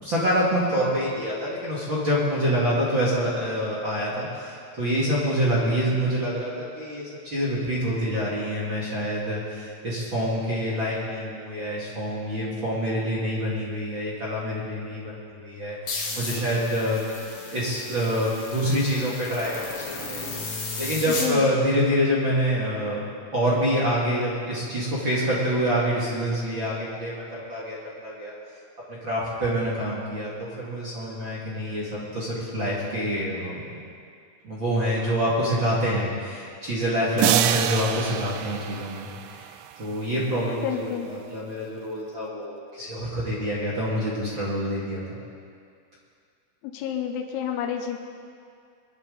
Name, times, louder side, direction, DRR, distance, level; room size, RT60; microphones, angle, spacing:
voice 1, 0.0-17.0 17.4-20.3 20.8-23.0 23.3-28.3 28.9-33.6 34.4-39.5 39.8-45.2, equal, 40° right, -7 dB, 1.9 m, -26 dB
sound 1, 15.9-21.3, left 3 dB, 50° left, 1.6 m, -34 dB
voice 2, 21.1-21.5 40.6-41.2 46.6-48.0, left 8 dB, 90° left, 4 dB, 3.1 m, -29 dB
sound 2, 37.2-39.7, right 12 dB, 85° right, 2.8 m, -26 dB
23.5 x 11.5 x 4.0 m, 2.3 s
omnidirectional pair, 5.4 m